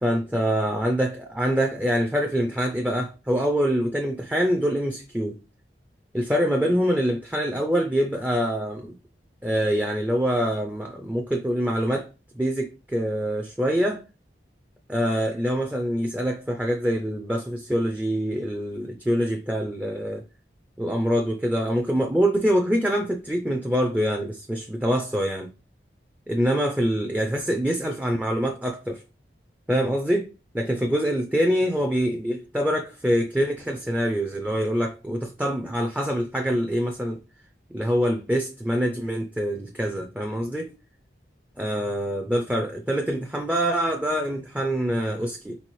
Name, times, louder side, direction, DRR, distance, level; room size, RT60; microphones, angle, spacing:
voice 1, 0.0-5.4 6.1-9.0 9.4-12.1 12.4-14.0 14.9-20.2 20.8-25.5 26.3-29.0 29.7-30.3 30.5-37.2 37.7-40.7 41.6-45.6, equal, 10° right, 0.4 m, -25 dB
4.1 x 4.0 x 3.1 m
head